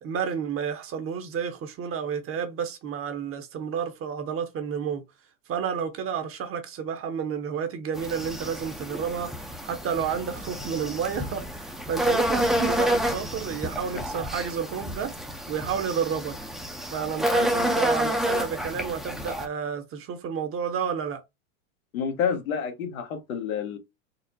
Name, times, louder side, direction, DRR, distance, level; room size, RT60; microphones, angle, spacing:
voice 1, 0.0-5.0 5.5-9.3 9.6-15.1 15.5-16.3 16.9-21.2, right 7 dB, 30° right, 0.8 m, -31 dB
sound 1, 7.9-19.5, equal, ahead, 0.5 m, -29 dB
voice 2, 21.9-23.8, left 7 dB, 85° left, 1.2 m, -29 dB
4.1 x 2.0 x 2.6 m
hypercardioid pair, 110°, 41 cm